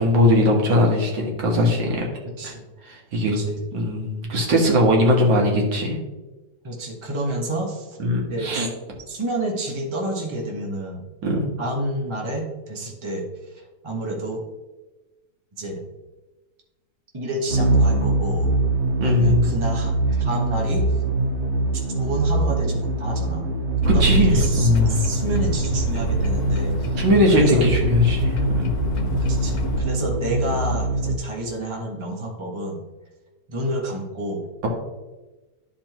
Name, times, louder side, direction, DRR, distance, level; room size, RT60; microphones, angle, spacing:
voice 1, 0.0-2.1 2.9-3.4 3.7-6.0 8.0-8.7 11.2-11.5 19.0-19.5 23.9-25.0 27.0-28.7, left 1 dB, 75° right, 0 dB, 2.2 m, -19 dB
voice 2, 3.2-3.6 6.6-8.0 8.3-8.7 9.1-11.1 11.6-14.4 15.6-15.8 17.1-18.5 19.0-20.9 22.0-23.5 23.8-27.0 27.3-27.7 28.9-32.8 33.5-34.5, right 1 dB, 20° right, -1 dB, 1.2 m, -29 dB
sound 1, 17.5-31.2, right 2 dB, 50° right, 0.9 m, -23 dB
sound 2, 23.8-29.8, right 1 dB, 60° left, 1.4 m, -26 dB
12.5 x 4.3 x 3.0 m, 1.1 s
omnidirectional pair, 2.0 m